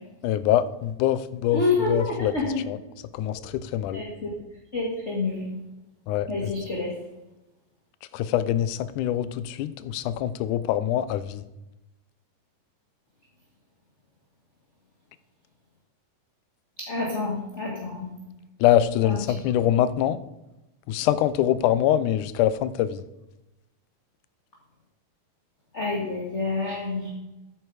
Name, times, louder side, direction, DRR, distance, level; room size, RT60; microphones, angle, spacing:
voice 1, 0.2-2.3 2.7-2.8 3.1-4.0 6.1-6.5 8.1-11.4 18.6-20.2 20.9-23.0, left 11 dB, 75° left, 15 dB, 1.9 m, -24 dB
voice 2, 1.5-2.6 3.9-4.3 4.7-5.5 6.3-6.9 16.8-18.1 19.0-19.2 25.7-27.1, left 3 dB, 25° left, -2 dB, 1.7 m, -28 dB
13.0 x 9.2 x 4.8 m, 0.99 s
omnidirectional pair, 4.0 m